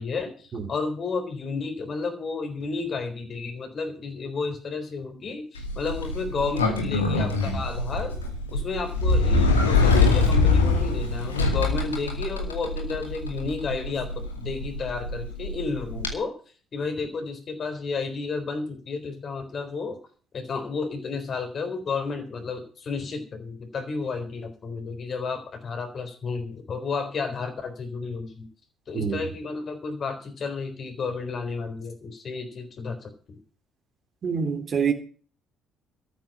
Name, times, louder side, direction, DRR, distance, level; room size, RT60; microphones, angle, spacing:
voice 1, 0.0-8.2 8.5-16.3 16.7-20.0 20.3-28.5 28.9-33.4, left 4 dB, 45° left, 4.1 m, -32 dB
Sliding door, 5.6-16.1, left 3 dB, 85° left, 2.2 m, -24 dB
voice 2, 28.9-29.2 34.2-34.9, right 6 dB, 45° right, 3.3 m, -26 dB
13.5 x 7.4 x 8.6 m
figure-of-eight pair, 50°, 0 cm